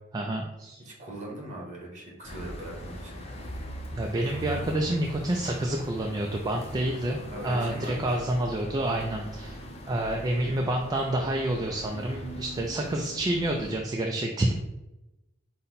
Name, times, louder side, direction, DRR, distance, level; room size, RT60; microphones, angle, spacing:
voice 1, 0.1-0.8 4.0-9.6 9.9-14.5, right 1 dB, 20° right, 1 dB, 0.3 m, -28 dB
voice 2, 0.8-3.2 7.3-8.2, right 1 dB, 40° right, -2 dB, 1.4 m, -40 dB
sound 1, 2.2-13.8, equal, 30° left, 0.6 m, -41 dB
5.4 x 2.2 x 4.0 m, 0.97 s
head